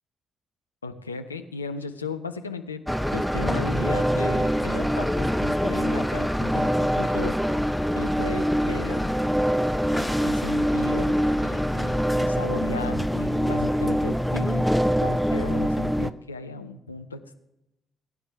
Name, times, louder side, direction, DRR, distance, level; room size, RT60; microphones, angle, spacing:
voice 1, 0.8-2.8 3.1-7.4 7.9-9.1 9.8-14.7 15.0-17.3, left 4 dB, 90° left, 7 dB, 0.6 m, -36 dB
sound 1, 2.9-16.1, equal, ahead, 0.6 m, -24 dB
20.0 x 9.9 x 3.4 m, 0.87 s
figure-of-eight pair, 45°, 0 cm